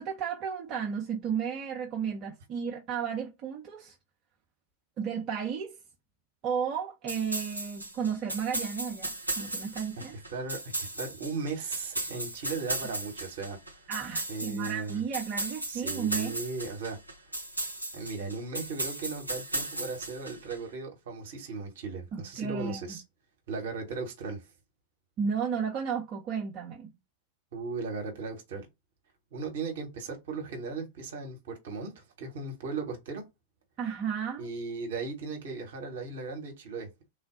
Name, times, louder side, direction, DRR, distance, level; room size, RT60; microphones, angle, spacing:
voice 1, 0.0-3.9 5.0-5.8 6.4-10.2 13.9-16.4 22.1-23.0 25.2-26.9 33.8-34.5, right 7 dB, 35° right, 0.7 m, -33 dB
sound 1, 7.1-20.6, right 2 dB, 85° right, 0.6 m, -36 dB
voice 2, 10.3-13.6 14.3-15.0 15.7-17.0 17.9-23.0 23.5-24.5 27.5-28.7 29.3-33.2 34.4-36.9, right 4 dB, 60° right, 1.0 m, -37 dB
3.4 x 2.2 x 3.6 m
figure-of-eight pair, 90°, 0 cm